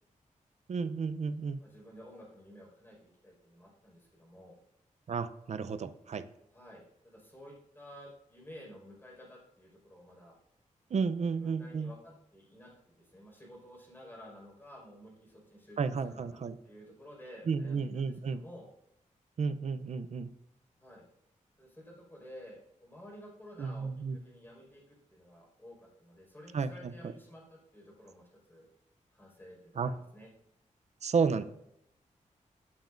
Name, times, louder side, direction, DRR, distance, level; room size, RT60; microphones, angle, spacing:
voice 1, 0.7-1.6 5.1-6.2 10.9-11.9 15.8-16.6 17.5-18.4 19.4-20.3 23.6-24.2 26.5-26.9 29.8-29.9 31.0-31.4, right 5 dB, 60° right, 12 dB, 0.6 m, -32 dB
voice 2, 1.6-4.5 6.5-10.4 11.3-18.7 20.8-21.0 21.6-28.7 29.1-30.3, equal, 15° left, -2 dB, 5.1 m, -52 dB
16.5 x 9.2 x 2.6 m, 0.79 s
wide cardioid pair, 145°, 13 cm